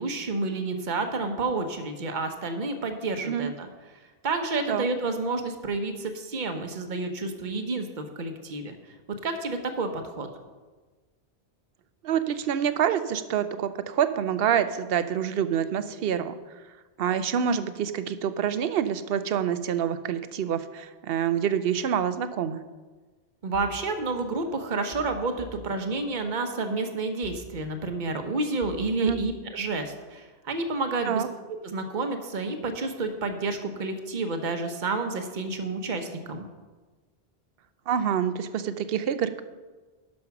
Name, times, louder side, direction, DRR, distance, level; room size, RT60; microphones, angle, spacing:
voice 1, 0.0-3.7 4.2-8.7 9.2-10.3 23.4-31.2 31.6-36.4, right 3 dB, 50° right, 6 dB, 1.1 m, -30 dB
voice 2, 12.0-16.3 17.0-22.6 29.0-29.2 31.1-31.3 37.9-39.4, right 8 dB, 70° right, 12 dB, 0.8 m, -27 dB
sound 1, 23.5-24.5 24.9-26.4 27.2-28.2 28.6-30.1 30.5-30.8, right 1 dB, 10° left, 1.7 m, -48 dB
11.5 x 5.4 x 5.9 m, 1.3 s
omnidirectional pair, 1.0 m